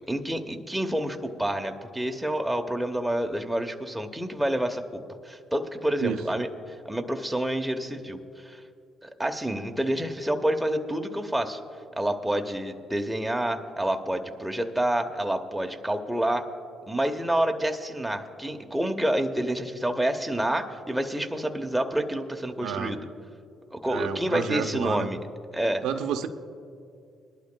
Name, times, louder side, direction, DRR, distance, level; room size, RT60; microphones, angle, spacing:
voice 1, 0.0-6.5 6.8-8.6 9.0-11.6 12.0-16.4 16.9-23.0 23.7-25.2 25.5-25.8, right 1 dB, 5° right, 4 dB, 0.9 m, -28 dB
voice 2, 22.6-23.0 23.9-25.1 25.8-26.3, right 8 dB, 80° right, 5 dB, 0.6 m, -30 dB
21.0 x 11.5 x 2.2 m, 2.4 s
cardioid pair, 95°, 0 cm